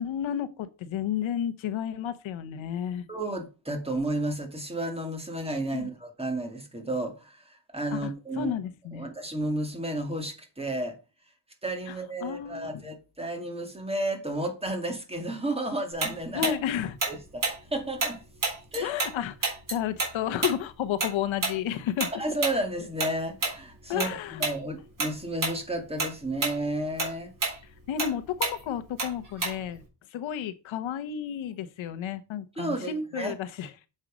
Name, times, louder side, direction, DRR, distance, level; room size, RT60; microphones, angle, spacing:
voice 1, 0.0-3.0 5.7-5.9 7.9-8.1 8.4-9.1 12.2-12.8 16.3-17.0 18.8-22.1 23.9-24.4 27.9-29.8 30.1-33.9, left 9 dB, 90° left, 1.0 m, -32 dB
voice 2, 3.1-8.5 8.9-11.0 11.6-16.5 17.1-18.2 18.7-18.9 22.1-27.3 32.6-33.3, right 1 dB, 15° right, 2.1 m, -32 dB
Tick-tock, 16.0-19.1 19.4-24.1 24.4-24.6 25.0-25.6 25.9-29.8, right 3 dB, 45° right, 3.9 m, -30 dB
7.3 x 5.5 x 5.0 m
cardioid pair, 120°, 45 cm